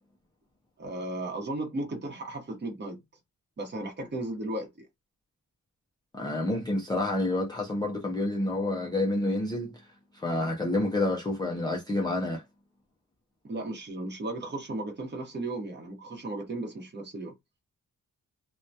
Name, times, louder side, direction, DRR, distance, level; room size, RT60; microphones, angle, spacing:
voice 1, 0.8-3.0 3.6-4.9 13.4-17.3, right 2 dB, 35° right, 0.8 m, -35 dB
voice 2, 6.1-9.8 10.1-12.4, left 2 dB, 15° left, 0.3 m, -28 dB
2.2 x 2.2 x 2.6 m
wide cardioid pair, 175°, 32 cm